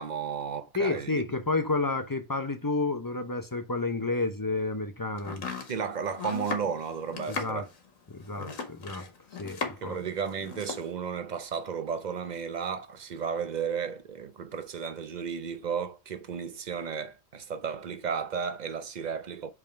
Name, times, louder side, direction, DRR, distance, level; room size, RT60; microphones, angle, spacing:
voice 1, 0.0-1.2 5.7-7.7 9.8-19.5, right 6 dB, 45° right, 0.6 m, -33 dB
voice 2, 0.7-5.4 7.3-7.6 8.1-9.1 9.4-10.0, left 3 dB, 30° left, 0.3 m, -30 dB
Domestic sounds home sounds, 5.2-10.0 10.3-10.9, left 4 dB, 85° left, 1.6 m, -37 dB
5.3 x 3.6 x 5.7 m
omnidirectional pair, 1.4 m